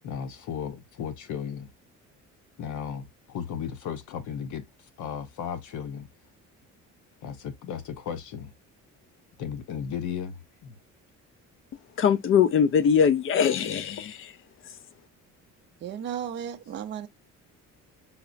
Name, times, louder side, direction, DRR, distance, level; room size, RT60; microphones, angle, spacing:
voice 1, 0.0-1.7 2.6-4.6 5.0-6.1 7.2-8.5 9.4-10.8, left 8 dB, 70° left, 0.8 m, -35 dB
voice 2, 12.0-14.3, left 7 dB, 40° left, 0.4 m, -22 dB
voice 3, 15.8-17.1, right 9 dB, 35° right, 0.4 m, -34 dB
5.6 x 2.0 x 2.4 m
cardioid pair, 140°, 32 cm